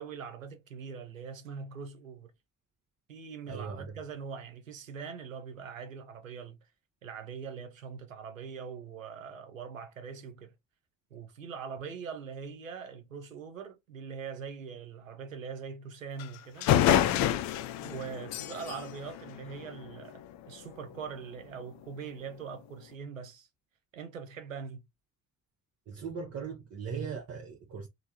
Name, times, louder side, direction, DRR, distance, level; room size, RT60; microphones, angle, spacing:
voice 1, 0.0-2.3 3.1-6.6 7.0-10.5 11.1-16.7 17.8-20.2 20.5-23.5 23.9-24.8, right 6 dB, 85° right, 0.5 m, -42 dB
voice 2, 3.5-3.8 25.9-27.9, right 6 dB, 40° right, 0.7 m, -38 dB
sound 1, 16.2-16.3 16.6-20.1, left 11 dB, 45° left, 0.4 m, -28 dB
3.2 x 2.1 x 2.7 m
figure-of-eight pair, 45°, 38 cm